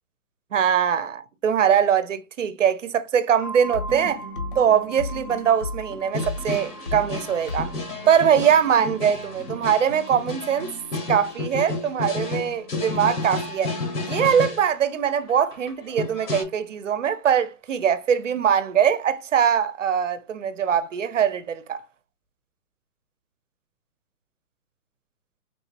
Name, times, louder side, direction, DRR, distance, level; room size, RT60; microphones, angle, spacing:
voice 1, 0.5-4.2 4.6-7.7 8.1-10.7 11.1-13.7 14.0-21.8, right 8 dB, 55° right, 0.5 m, -22 dB
sound 1, 3.4-13.0, right 3 dB, 75° left, 1.2 m, -43 dB
sound 2, 3.6-13.0, left 2 dB, 35° left, 0.5 m, -37 dB
sound 3, 6.1-14.6 15.1-16.4, left 3 dB, 90° left, 1.5 m, -31 dB
3.5 x 2.5 x 2.7 m
hypercardioid pair, 175°, 45 cm